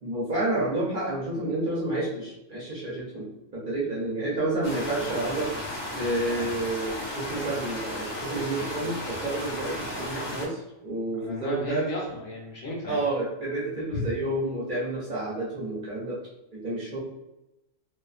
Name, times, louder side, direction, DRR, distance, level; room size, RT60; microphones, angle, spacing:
voice 1, 0.0-3.3 3.5-5.5 6.0-11.9 12.9-16.2 16.5-17.0, right 2 dB, 50° right, -6 dB, 0.7 m, -30 dB
sound 1, 4.6-10.5, left 1 dB, 30° left, 0.4 m, -34 dB
voice 2, 11.1-13.0 13.9-14.0, left 1 dB, 60° left, -3 dB, 0.8 m, -34 dB
2.4 x 2.4 x 2.3 m, 0.94 s
omnidirectional pair, 1.3 m